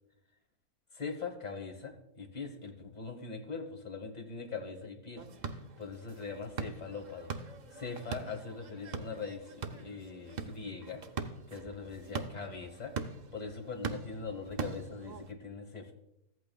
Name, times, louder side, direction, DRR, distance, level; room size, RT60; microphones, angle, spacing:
voice 1, 1.0-5.2 5.5-7.3 7.7-11.0 11.5-12.9 13.3-15.9, left 4 dB, 30° left, 3 dB, 1.1 m, -41 dB
sound 1, 5.2-15.3, right 4 dB, 90° right, 0.3 m, -42 dB
14.5 x 8.5 x 2.3 m, 0.81 s
omnidirectional pair, 1.6 m